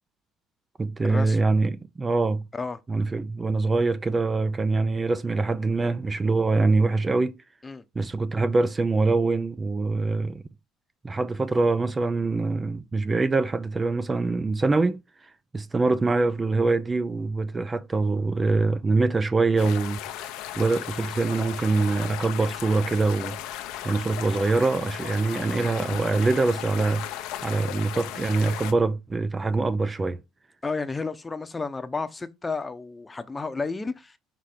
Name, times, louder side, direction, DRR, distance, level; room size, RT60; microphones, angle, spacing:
voice 1, 0.8-2.4 2.9-7.3 8.0-10.4 11.0-15.0 15.5-23.4 23.8-30.2, right 3 dB, 25° right, 0.4 m, -24 dB
sound 1, 19.6-28.7, left 13 dB, 80° left, 0.7 m, -36 dB
voice 2, 30.6-34.2, left 4 dB, 20° left, 0.8 m, -32 dB
5.8 x 3.3 x 5.0 m
supercardioid pair, 80°, 0 cm